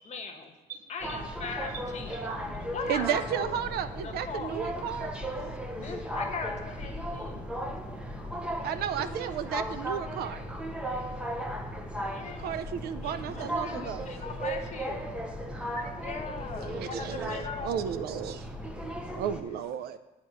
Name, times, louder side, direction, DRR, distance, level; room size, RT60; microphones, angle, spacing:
voice 1, 0.0-0.5 0.9-2.1 2.7-3.5 4.0-4.6 5.7-7.6 12.1-12.6 13.0-15.0 16.0-17.8, left 5 dB, 45° left, 4 dB, 1.1 m, -39 dB
sound 1, 1.0-19.4, equal, 5° right, 0.8 m, -36 dB
voice 2, 2.1-2.6 15.4-16.0 17.3-17.6, right 5 dB, 50° right, 7 dB, 0.9 m, -46 dB
voice 3, 2.9-5.1 8.6-10.4 12.2-14.1 16.7-18.5 19.1-20.0, right 9 dB, 70° right, 12 dB, 0.5 m, -33 dB
8.7 x 4.3 x 6.4 m, 1.0 s
cardioid pair, 110°, 17 cm